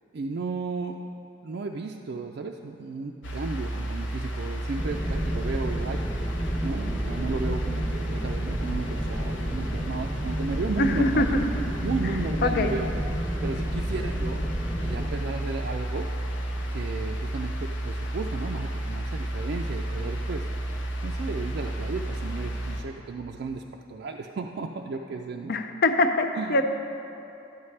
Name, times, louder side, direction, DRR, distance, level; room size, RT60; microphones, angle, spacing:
voice 1, 0.1-1.0 1.4-6.0 6.6-11.3 11.8-12.9 13.4-14.4 14.8-16.1 16.7-20.5 21.0-23.6 23.9-25.5 26.4-26.6, right 4 dB, 55° right, 1 dB, 0.4 m, -34 dB
sound 1, 3.2-22.8, right 1 dB, 75° left, 0.8 m, -32 dB
sound 2, 4.8-15.1, equal, 10° left, 0.7 m, -32 dB
voice 2, 10.8-11.5 12.4-12.7 25.5-26.6, left 2 dB, 50° left, 7 dB, 0.5 m, -23 dB
12.0 x 9.6 x 3.2 m, 2.9 s
head